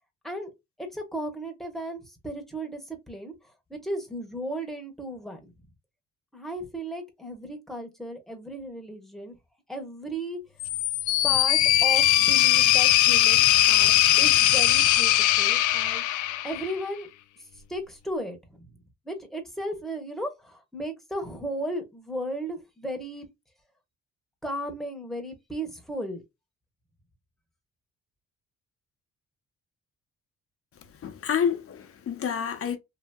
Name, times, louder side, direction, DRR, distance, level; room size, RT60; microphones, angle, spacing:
voice 1, 0.8-3.3 3.7-5.5 6.3-9.4 9.7-10.4 11.2-16.0 16.4-17.1 17.7-23.3 24.4-26.2, right 1 dB, ahead, 1.1 m, -35 dB
sound 1, 10.6-16.8, left 14 dB, 80° left, 0.4 m, -20 dB
voice 2, 31.0-32.8, left 7 dB, 50° left, 0.8 m, -28 dB
2.8 x 2.7 x 2.2 m
cardioid pair, 90°, 30 cm